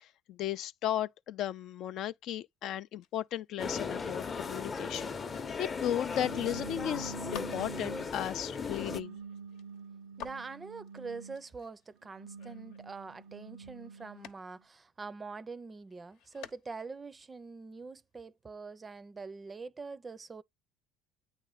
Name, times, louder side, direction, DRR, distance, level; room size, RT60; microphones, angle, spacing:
voice 1, 0.0-9.2, left 11 dB, 65° left, 0.4 m, -36 dB
sound 1, 3.0-6.7 7.1-14.6 14.9-15.5 15.9-17.1 17.3-17.4 17.6-18.2 19.4-19.5, left 8 dB, 80° left, 0.9 m, -53 dB
sound 2, 3.6-9.0, left 5 dB, 30° left, 0.7 m, -37 dB
sound 3, 6.1-8.2 8.8-11.5 12.0-14.3, right 5 dB, 90° right, 0.4 m, -46 dB
voice 2, 10.2-20.4, right 4 dB, 25° right, 0.5 m, -44 dB
9.0 x 3.1 x 3.8 m
supercardioid pair, 100°, 0 cm